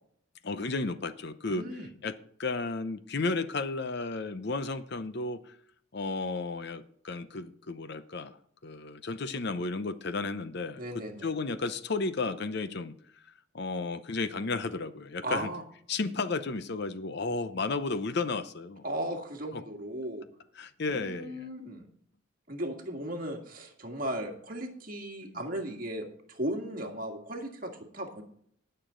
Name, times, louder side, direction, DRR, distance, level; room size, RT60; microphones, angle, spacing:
voice 1, 0.4-1.7 2.0-5.6 5.9-8.4 8.6-10.8 11.2-15.5 15.9-18.8 19.5-19.6 20.6-21.5 25.2-25.4, left 3 dB, 50° left, 12 dB, 0.7 m, -33 dB
voice 2, 1.5-1.9 10.8-11.3 15.2-15.6 18.8-20.2 20.8-21.8 22.5-28.2, right 1 dB, 40° right, 2 dB, 1.9 m, -36 dB
19.0 x 6.8 x 3.8 m, 0.63 s
head